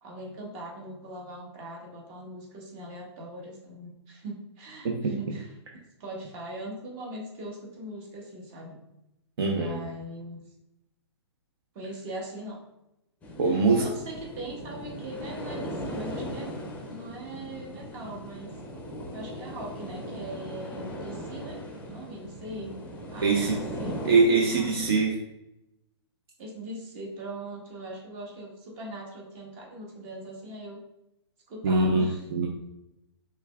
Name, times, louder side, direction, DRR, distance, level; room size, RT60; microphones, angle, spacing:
voice 1, 0.0-5.5 6.0-8.8 9.4-10.4 11.7-12.6 13.4-16.5 16.9-18.5 19.1-21.6 21.8-22.7 23.1-23.4 23.8-24.0 24.5-24.7 26.4-30.8 31.5-32.3, right 1 dB, 35° right, -1 dB, 1.4 m, -40 dB
voice 2, 9.4-9.8 13.4-13.8 23.2-23.5 24.0-25.2 31.6-32.1 32.3-32.5, right 3 dB, 60° right, 0 dB, 0.7 m, -22 dB
sound 1, 13.2-25.1, equal, 10° left, 0.6 m, -38 dB
5.6 x 3.5 x 2.3 m, 0.88 s
hypercardioid pair, 130°, 14 cm